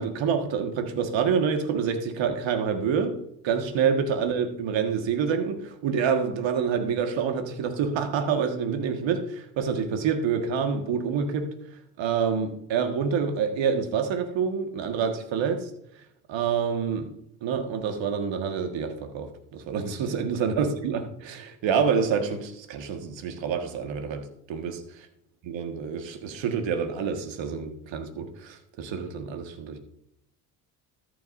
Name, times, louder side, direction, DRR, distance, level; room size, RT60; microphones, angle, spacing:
voice 1, 0.0-3.2 3.4-11.5 12.0-15.7 16.3-17.1 17.4-24.8 25.5-29.8, right 6 dB, 60° right, 6 dB, 1.7 m, -27 dB
13.5 x 8.6 x 2.6 m, 0.76 s
hypercardioid pair, 60°, 50 cm